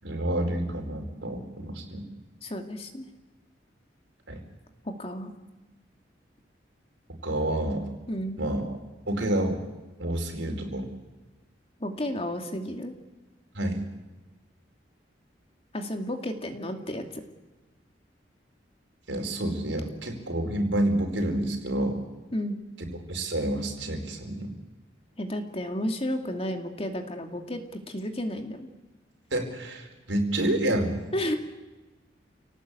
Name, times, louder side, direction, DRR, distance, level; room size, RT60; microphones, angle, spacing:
voice 1, 0.0-2.0 4.3-4.4 7.2-7.9 8.4-8.7 9.1-9.6 10.0-10.9 13.5-13.8 19.1-22.0 23.1-24.5 29.3-31.0, right 1 dB, 85° right, 4 dB, 4.6 m, -28 dB
voice 2, 2.4-3.1 4.8-5.3 8.1-8.4 11.8-12.9 15.7-17.2 22.3-22.6 25.2-28.7 31.1-31.4, left 1 dB, 30° left, 4 dB, 2.4 m, -32 dB
29.0 x 18.0 x 8.3 m, 1.2 s
head